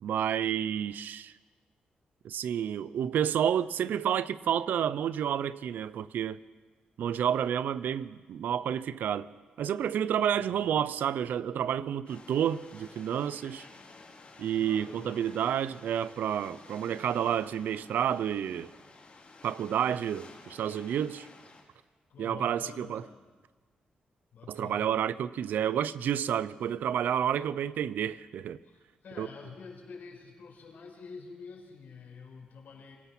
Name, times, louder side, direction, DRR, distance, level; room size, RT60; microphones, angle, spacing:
voice 1, 0.0-1.3 2.2-6.4 7.0-9.3 9.6-13.7 14.4-18.7 19.4-21.3 22.2-23.0 24.5-28.6 29.2-29.3, right 9 dB, 85° right, 0.6 m, -30 dB
voice 2, 10.3-10.8 14.6-15.3 22.1-23.3 24.3-24.9 28.6-33.0, left 5 dB, 75° left, 5.4 m, -48 dB
sound 1, 12.1-21.6, left 3 dB, 45° left, 4.1 m, -53 dB
25.5 x 17.0 x 6.1 m
cardioid pair, 90°, 3 cm